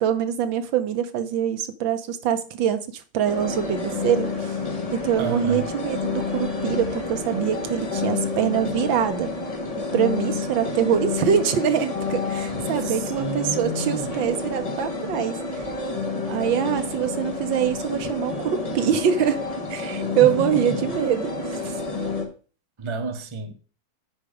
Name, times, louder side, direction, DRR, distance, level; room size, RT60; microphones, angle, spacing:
voice 1, 0.0-4.5 4.9-9.3 9.8-15.4 16.3-19.4 19.7-21.8, right 9 dB, 70° right, 1.5 m, -24 dB
sound 1, 3.3-22.3, left 3 dB, 20° left, 1.0 m, -29 dB
voice 2, 5.2-5.7 12.8-14.1 20.2-20.8 22.8-23.5, right 3 dB, 45° right, 0.3 m, -31 dB
7.9 x 5.1 x 4.9 m
omnidirectional pair, 2.3 m